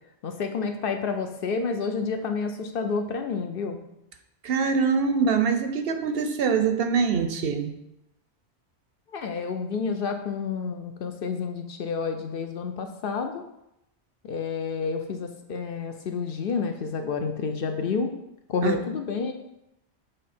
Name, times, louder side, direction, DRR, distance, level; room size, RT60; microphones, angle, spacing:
voice 1, 0.2-3.8 9.1-13.4 14.2-18.1 18.5-19.3, left 5 dB, 60° left, 6 dB, 0.7 m, -29 dB
voice 2, 4.4-7.7 18.6-18.8, right 5 dB, 65° right, 7 dB, 0.7 m, -24 dB
6.6 x 3.7 x 4.2 m, 0.84 s
omnidirectional pair, 1.2 m